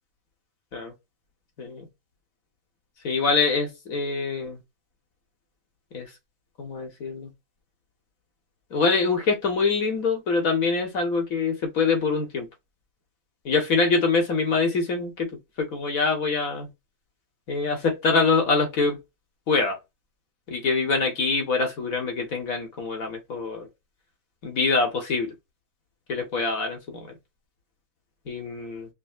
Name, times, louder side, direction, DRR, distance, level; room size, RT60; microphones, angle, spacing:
voice 1, 3.0-4.6 5.9-6.1 6.6-7.3 8.7-12.5 13.4-15.3 15.6-16.7 17.5-19.0 19.5-19.8 20.5-23.7 24.4-25.3 26.1-26.8 28.3-28.9, left 4 dB, 75° left, 1.6 m, -24 dB
5.4 x 2.2 x 2.2 m
omnidirectional pair, 1.5 m